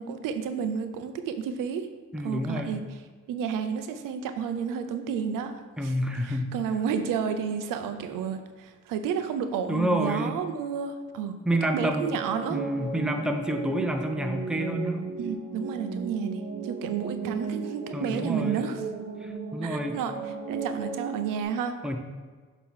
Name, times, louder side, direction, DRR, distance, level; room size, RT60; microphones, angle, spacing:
voice 1, 0.0-1.9 2.2-2.8 3.3-5.9 6.2-11.4 11.7-12.6 15.2-18.8 19.6-20.1 20.5-21.8, right 7 dB, 90° right, 8 dB, 0.6 m, -31 dB
voice 2, 2.1-2.8 5.8-6.5 9.7-10.3 11.4-12.2 12.5-15.0 17.9-18.6 19.2-20.0 21.8-22.0, equal, ahead, 4 dB, 0.7 m, -28 dB
sound 1, 12.0-21.4, right 5 dB, 50° right, 1.0 m, -35 dB
6.5 x 3.0 x 5.6 m, 1.5 s
cardioid pair, 80°, 31 cm